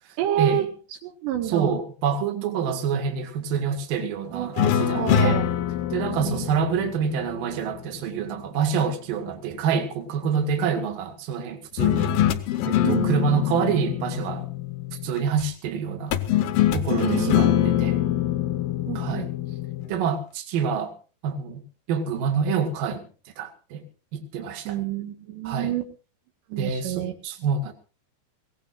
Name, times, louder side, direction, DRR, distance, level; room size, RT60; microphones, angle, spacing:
voice 1, 0.2-0.7 1.0-1.7 4.3-5.5 6.2-6.5 12.8-13.1 17.0-17.7 18.9-19.3 24.7-25.9 26.5-27.1, right 11 dB, 80° right, 4 dB, 3.7 m, -28 dB
voice 2, 1.5-5.4 5.9-12.2 12.6-14.5 15.0-16.2 16.7-18.0 18.9-19.3 19.9-20.9 21.2-21.6 21.9-23.1 23.4-23.8 24.1-24.8 25.4-25.7 26.6-27.7, right 6 dB, 60° right, 5 dB, 3.3 m, -27 dB
sound 1, 4.6-8.0 11.8-15.2 16.1-20.0, left 10 dB, 70° left, 2.4 m, -24 dB
24.0 x 17.5 x 2.5 m, 0.33 s
omnidirectional pair, 5.0 m